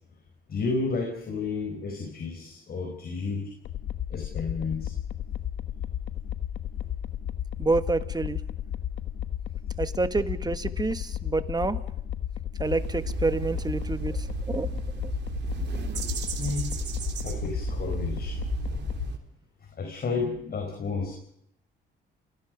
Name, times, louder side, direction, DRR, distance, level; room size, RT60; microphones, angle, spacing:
voice 1, 0.5-3.5 4.1-4.9 16.4-16.8 17.2-18.4 19.8-21.2, left 4 dB, 50° left, 4 dB, 4.7 m, -31 dB
sound 1, 3.6-19.1, left 10 dB, 80° left, 1.3 m, -33 dB
voice 2, 7.6-8.4 9.8-11.8 12.6-15.1 15.6-15.8, right 3 dB, 20° right, 11 dB, 1.6 m, -28 dB
sound 2, 12.6-19.2, right 7 dB, 60° right, 3.6 m, -35 dB
29.5 x 18.0 x 5.2 m, 0.73 s
cardioid pair, 90°, 20 cm